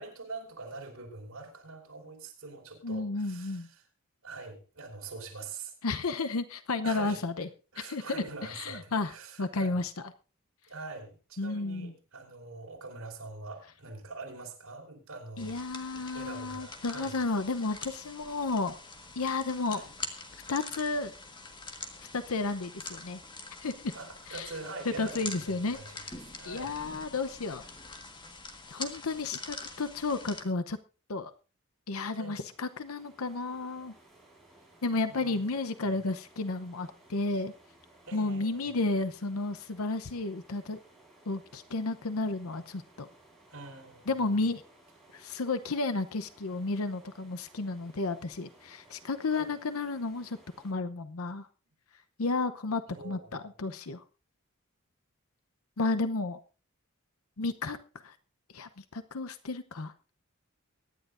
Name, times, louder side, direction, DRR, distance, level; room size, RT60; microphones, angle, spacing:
voice 1, 0.0-3.9 4.2-5.7 6.8-7.2 7.7-9.8 10.7-15.5 15.9-17.2 19.7-19.9 23.9-26.0 26.4-26.7 32.2-32.4 35.1-35.8 38.1-38.7 43.5-44.1 49.3-49.5 52.9-53.4, right 3 dB, 75° right, -1 dB, 5.2 m, -44 dB
voice 2, 2.8-3.7 5.8-7.5 7.8-8.0 8.5-9.1 9.4-9.9 11.4-11.9 15.4-18.8 19.2-19.8 20.5-21.1 22.1-23.2 23.6-23.9 24.3-24.5 25.0-26.1 26.5-27.6 28.7-30.8 31.1-31.3 31.9-33.9 34.8-37.5 38.1-40.8 41.3-43.1 44.1-44.6 45.1-50.4 50.6-51.5 52.2-54.0 55.8-56.4 57.4-57.8 58.0-58.1 58.5-59.9, left 3 dB, 85° left, 10 dB, 0.8 m, -32 dB
sound 1, 15.4-30.4, left 3 dB, 20° left, 1.6 m, -44 dB
sound 2, 32.0-50.7, right 1 dB, ahead, 4.6 m, -59 dB
23.5 x 10.5 x 2.6 m, 0.34 s
head